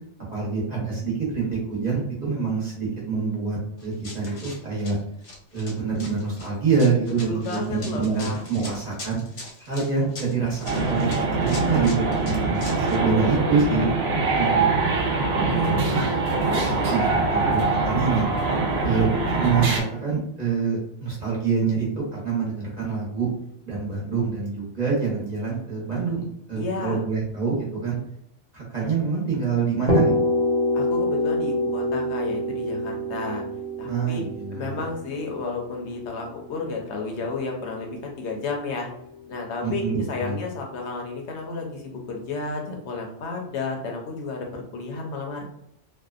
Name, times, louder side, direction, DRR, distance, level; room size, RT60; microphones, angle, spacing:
voice 1, 0.3-5.0 5.5-9.2 9.6-13.9 14.3-14.8 15.5-15.9 16.9-18.3 18.8-23.3 23.6-28.0 28.5-30.1 33.9-34.8 39.6-40.4, right 5 dB, 40° right, -6 dB, 1.0 m, -26 dB
Run, 3.8-13.0, left 2 dB, 90° left, 1.1 m, -41 dB
voice 2, 7.2-8.4 12.3-13.5 14.3-15.0 15.5-16.7 26.5-27.0 30.7-33.4 33.8-34.2 34.5-38.9 39.3-45.4, left 3 dB, 70° left, 1 dB, 0.9 m, -32 dB
sound 1, 10.6-19.8, right 3 dB, 65° right, 0.8 m, -23 dB
sound 2, 29.9-37.6, left 1 dB, 45° left, 0.7 m, -26 dB
2.6 x 2.2 x 2.4 m, 0.74 s
omnidirectional pair, 1.2 m